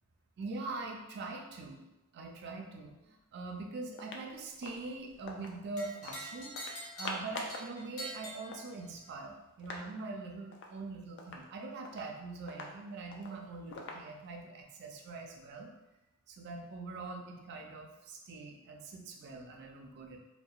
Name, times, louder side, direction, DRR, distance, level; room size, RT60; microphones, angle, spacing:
voice 1, 0.4-1.8 2.1-6.6 7.0-15.7 16.3-20.2, right 3 dB, 50° right, 1 dB, 0.3 m, -43 dB
sound 1, 3.5-3.6 3.9-5.6 6.0-6.2 6.6-7.7 8.0-8.1 8.3-9.9 10.2-10.3 10.5-10.8 11.2-14.5, left 2 dB, 55° left, 0.3 m, -45 dB
sound 2, 5.8-9.1, equal, 90° left, 0.7 m, -45 dB
2.7 x 2.1 x 2.3 m, 1.0 s
head